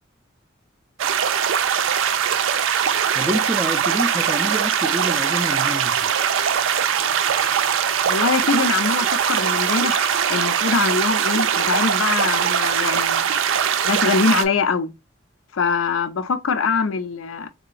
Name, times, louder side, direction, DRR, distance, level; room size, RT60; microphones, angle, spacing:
sound 1, 1.0-14.4, right 8 dB, 80° right, 0.4 m, -21 dB
voice 1, 3.1-6.1, right 1 dB, 10° right, 0.3 m, -27 dB
voice 2, 8.0-13.2 13.8-14.9 15.5-17.5, left 4 dB, 85° left, 0.5 m, -23 dB
3.8 x 2.9 x 2.4 m
head